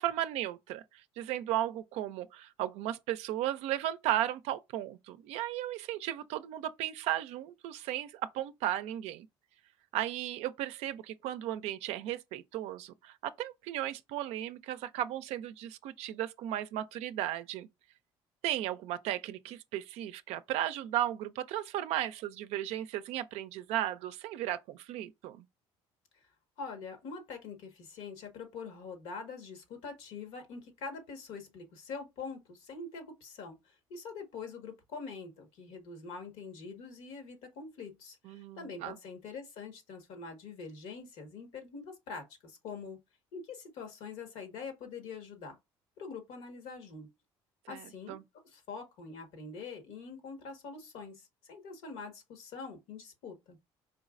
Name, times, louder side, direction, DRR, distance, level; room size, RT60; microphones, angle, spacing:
voice 1, 0.0-9.3 9.9-17.7 18.4-25.4 38.2-39.0 47.7-48.2, right 13 dB, 75° right, 0.4 m, -35 dB
voice 2, 26.6-43.0 43.3-45.6 46.0-47.1 47.7-48.2 48.4-53.6, left 4 dB, 80° left, 1.5 m, -44 dB
4.5 x 3.1 x 2.4 m
supercardioid pair, 85°, 11 cm